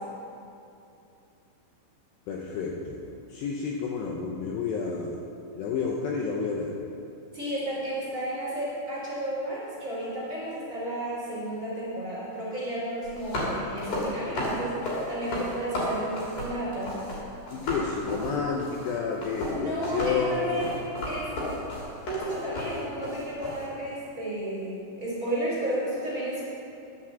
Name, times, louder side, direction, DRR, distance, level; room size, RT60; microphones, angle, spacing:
voice 1, 2.3-3.0 3.3-5.1 5.5-6.7 17.5-20.4, left 5 dB, 75° left, -1 dB, 2.7 m, -30 dB
voice 2, 7.3-17.0 19.5-20.8 21.1-21.3 22.1-26.4, right 1 dB, 20° right, -8 dB, 3.1 m, -32 dB
sound 1, 13.0-17.2 17.5-23.6, left 1 dB, 45° left, 4.0 m, -33 dB
11.0 x 7.5 x 7.2 m, 2.7 s
omnidirectional pair, 5.6 m